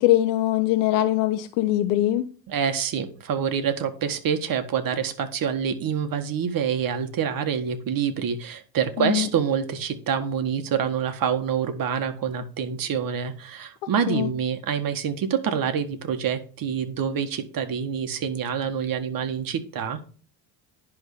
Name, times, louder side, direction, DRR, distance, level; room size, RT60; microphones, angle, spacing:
voice 1, 0.0-2.3 9.0-9.3 14.1-14.3, left 14 dB, 85° left, 0.9 m, -22 dB
voice 2, 2.5-20.0, right 7 dB, 55° right, 1.7 m, -26 dB
10.5 x 3.7 x 6.7 m
supercardioid pair, 90°, 41 cm